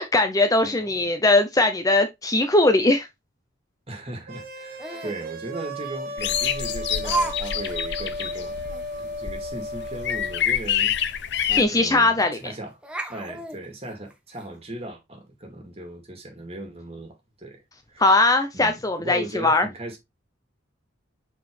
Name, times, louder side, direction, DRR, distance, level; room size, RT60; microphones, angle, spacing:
voice 1, 0.0-3.1 11.6-12.4 18.0-19.7, left 2 dB, 20° left, 0.6 m, -20 dB
voice 2, 0.6-1.1 3.9-8.7 9.0-12.7 13.1-17.6 17.9-18.1 18.5-20.0, right 1 dB, 30° right, 2.4 m, -38 dB
sound 1, 4.3-10.4, left 1 dB, 50° right, 1.2 m, -34 dB
Laughter, 4.8-5.2 6.1-6.2 7.0-7.4 7.6-7.7 8.2-8.3 8.7-8.8 10.8-10.9 11.2-11.3 12.2-12.5 12.8-14.4, right 2 dB, 5° right, 1.0 m, -31 dB
sound 2, 6.2-11.6, left 9 dB, 60° left, 0.7 m, -27 dB
6.1 x 4.8 x 3.3 m
head